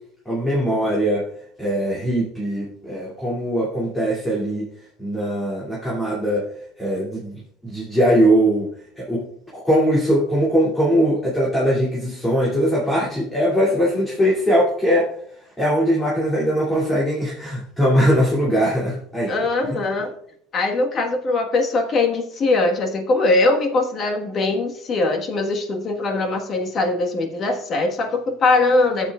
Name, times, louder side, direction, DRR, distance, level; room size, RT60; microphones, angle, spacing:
voice 1, 0.3-1.3 1.6-4.6 5.0-6.4 6.8-8.7 8.9-9.2 9.5-15.1 15.6-19.4, equal, 10° left, -6 dB, 2.6 m, -20 dB
voice 2, 19.3-20.1 20.5-29.1, left 2 dB, 35° left, 4 dB, 1.4 m, -21 dB
14.5 x 7.3 x 2.4 m, 0.66 s
cardioid pair, 130°, 0 cm